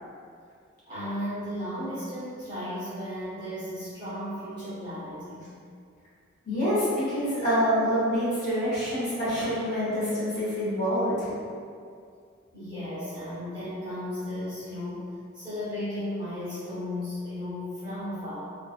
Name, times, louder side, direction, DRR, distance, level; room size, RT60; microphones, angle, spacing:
voice 1, 0.8-5.5 12.5-15.1 15.3-18.4, left 1 dB, 20° right, -13 dB, 0.9 m, -35 dB
voice 2, 6.4-11.3, equal, 35° left, -12 dB, 0.9 m, -26 dB
2.6 x 2.3 x 2.4 m, 2.3 s
head